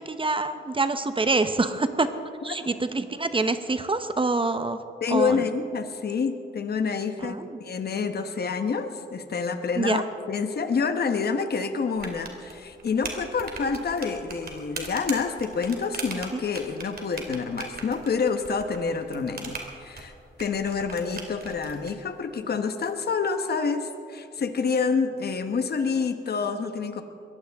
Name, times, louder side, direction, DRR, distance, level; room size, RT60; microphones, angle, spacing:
voice 1, 0.0-2.1 2.4-4.8 5.1-5.4 7.2-7.6 9.8-10.0 16.3-16.4, right 3 dB, 25° right, 10 dB, 0.9 m, -26 dB
voice 2, 5.0-20.1 20.4-27.0, left 5 dB, 60° left, 7 dB, 1.2 m, -28 dB
sound 1, 12.0-21.9, right 3 dB, 55° right, 2.6 m, -39 dB
22.0 x 16.0 x 3.6 m, 2.5 s
cardioid pair, 85°, 19 cm